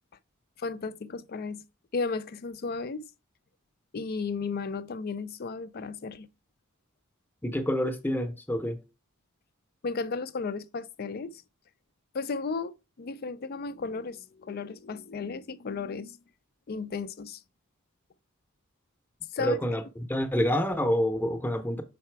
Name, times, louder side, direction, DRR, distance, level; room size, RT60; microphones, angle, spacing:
voice 1, 0.6-1.6 1.9-3.0 3.9-6.3 9.8-11.4 12.1-16.2 16.7-17.4 19.3-19.6, left 4 dB, 45° left, 0.4 m, -34 dB
voice 2, 7.4-8.8 19.4-19.8 20.1-21.8, equal, 10° left, 0.8 m, -27 dB
5.7 x 4.1 x 4.6 m
head